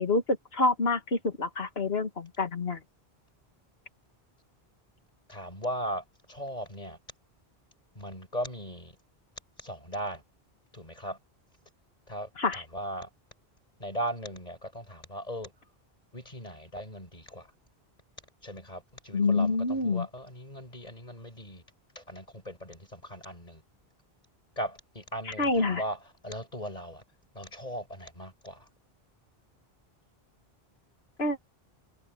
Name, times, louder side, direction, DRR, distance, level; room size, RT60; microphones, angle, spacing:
voice 1, 0.0-2.8 12.4-12.6 19.1-20.1 25.4-25.8 31.2-31.4, left 3 dB, 75° left, 2.2 m, -27 dB
voice 2, 5.3-7.0 7.9-9.0 9.6-10.2 10.7-11.2 12.1-13.1 13.8-15.5 16.1-17.5 18.4-21.6 21.9-23.6 24.6-27.0 27.3-28.7, equal, 40° left, 6.5 m, -38 dB
omnidirectional pair, 1.0 m